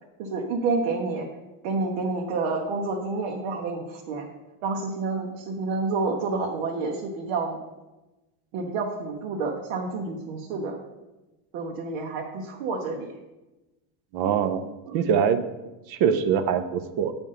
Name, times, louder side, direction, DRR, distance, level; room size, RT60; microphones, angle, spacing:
voice 1, 0.2-1.3 1.6-4.3 4.6-7.6 8.5-10.8 11.5-13.1 14.9-15.0, right 3 dB, 70° right, 0 dB, 1.2 m, -29 dB
voice 2, 14.1-14.7 14.9-15.4 15.9-17.1, right 7 dB, 50° right, 10 dB, 0.7 m, -23 dB
9.0 x 3.6 x 5.6 m, 1.1 s
cardioid pair, 160°, 48 cm